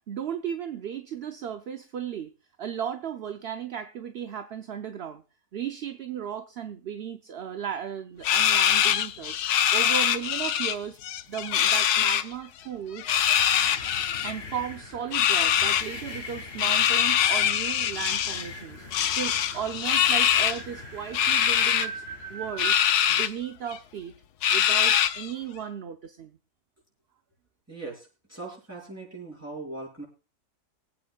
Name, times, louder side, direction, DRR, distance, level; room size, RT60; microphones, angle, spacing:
voice 1, 0.1-2.3 2.6-5.2 5.5-9.4 9.7-11.0 11.3-13.1 14.2-22.0 22.3-22.8 23.1-24.1 24.5-26.4, right 8 dB, 55° right, 7 dB, 0.7 m, -35 dB
sound 1, 8.2-10.7 11.0-12.2 13.0-14.3 15.1-15.9 16.6-18.5 18.9-20.6 21.1-21.9 22.6-23.3 23.7-23.8 24.4-25.3, left 9 dB, 90° left, 1.3 m, -23 dB
sound 2, 13.1-22.9, equal, 40° left, 2.3 m, -40 dB
voice 2, 27.7-30.0, right 2 dB, 10° right, -3 dB, 5.8 m, -40 dB
24.0 x 8.8 x 2.3 m, 0.35 s
omnidirectional pair, 1.6 m